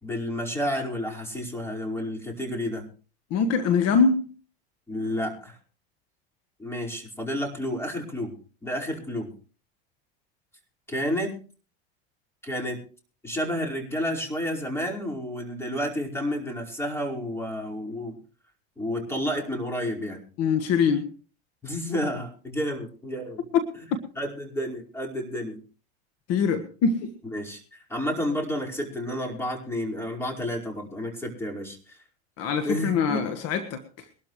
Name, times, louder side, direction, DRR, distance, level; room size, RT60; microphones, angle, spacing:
voice 1, 0.0-2.9 4.9-5.6 6.6-8.4 8.6-9.3 10.9-11.4 12.4-12.8 13.2-18.2 18.8-20.2 21.6-23.4 24.2-25.6 27.3-32.0 32.6-33.3, equal, 10° left, 0 dB, 5.0 m, -30 dB
voice 2, 3.3-4.3 20.4-21.1 23.5-23.6 26.3-27.1 32.4-34.1, left 5 dB, 50° left, 9 dB, 1.5 m, -23 dB
23.0 x 12.5 x 3.2 m, 0.37 s
supercardioid pair, 120°, 32 cm